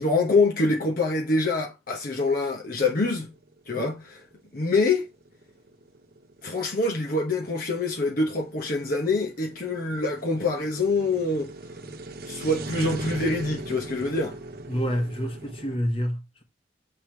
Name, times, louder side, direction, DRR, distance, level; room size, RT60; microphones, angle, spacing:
voice 1, 0.0-3.3 3.7-4.2 4.5-5.1 6.4-11.5 12.3-14.4, left 3 dB, 50° left, 1.0 m, -25 dB
sound 1, 3.3-15.8, right 2 dB, 50° right, 0.9 m, -40 dB
voice 2, 14.7-16.4, equal, 30° left, 1.4 m, -28 dB
7.8 x 3.5 x 4.5 m
head